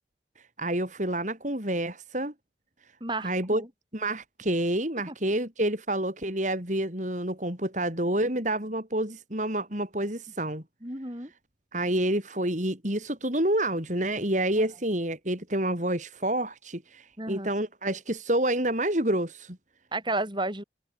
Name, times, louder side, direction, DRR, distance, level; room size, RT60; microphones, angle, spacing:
voice 1, 0.6-2.3 3.2-3.6 3.9-10.6 11.7-19.6, right 1 dB, 40° right, 5.4 m, -28 dB
voice 2, 3.0-3.7 5.1-5.2 10.8-11.3 14.6-14.7 17.2-17.5 19.9-20.6, right 2 dB, 25° right, 7.1 m, -32 dB
open air
head